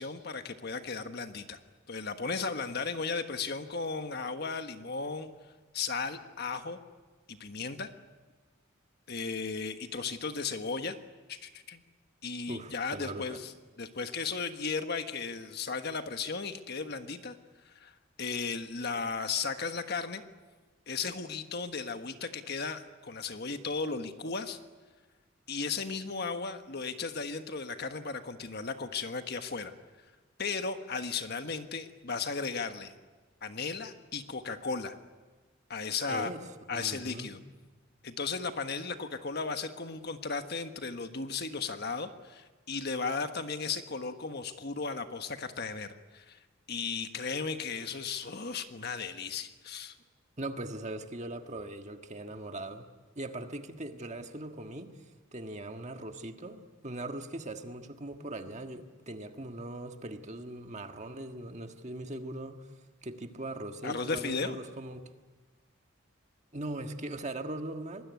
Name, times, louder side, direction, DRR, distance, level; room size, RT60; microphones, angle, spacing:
voice 1, 0.0-1.6 1.9-5.3 5.7-6.8 7.3-7.9 9.1-11.0 11.3-11.8 12.2-13.5 13.8-17.4 17.6-20.2 20.9-24.6 25.5-29.7 30.4-32.9 33.4-35.0 35.7-36.3 36.7-37.4 38.0-46.4 46.7-50.0 63.8-64.6, left 4 dB, 55° left, 8 dB, 1.4 m, -35 dB
voice 2, 12.5-13.4 36.1-36.4 36.7-37.3 50.4-52.9 53.1-55.0 55.3-62.7 63.0-65.0 66.5-68.0, right 1 dB, 35° right, 5 dB, 1.6 m, -40 dB
25.5 x 20.5 x 9.5 m, 1.3 s
head